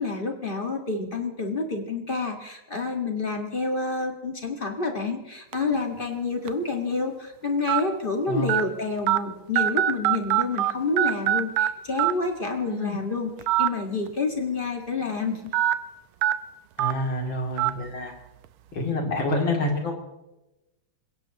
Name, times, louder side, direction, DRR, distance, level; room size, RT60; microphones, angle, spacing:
voice 1, 0.0-13.3 13.6-15.5, left 3 dB, 25° left, 3 dB, 1.7 m, -28 dB
sound 1, 5.5-5.8 6.5-6.6 7.7-7.8 8.5-8.6 9.1-9.2 9.6-10.7 11.0-11.7 12.0-12.1 13.4-13.7 14.1-14.2 15.5-15.7 16.2-16.3 16.8-16.9 17.6-17.7, right 13 dB, 80° right, 1.6 m, -22 dB
voice 2, 12.7-13.0 16.8-18.1 18.7-20.0, left 1 dB, 60° left, 1 dB, 3.5 m, -27 dB
27.5 x 16.0 x 3.0 m, 0.99 s
omnidirectional pair, 2.4 m